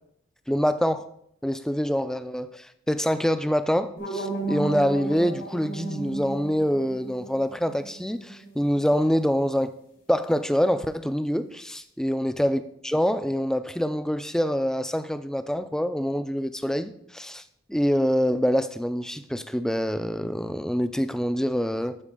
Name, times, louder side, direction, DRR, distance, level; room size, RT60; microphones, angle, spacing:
voice 1, 0.5-1.0 1.4-9.7 10.1-17.4 17.7-22.0, equal, 5° left, 11 dB, 0.3 m, -25 dB
sound 1, 4.0-8.9, right 3 dB, 85° left, 3.9 m, -35 dB
13.0 x 5.3 x 3.8 m, 0.71 s
head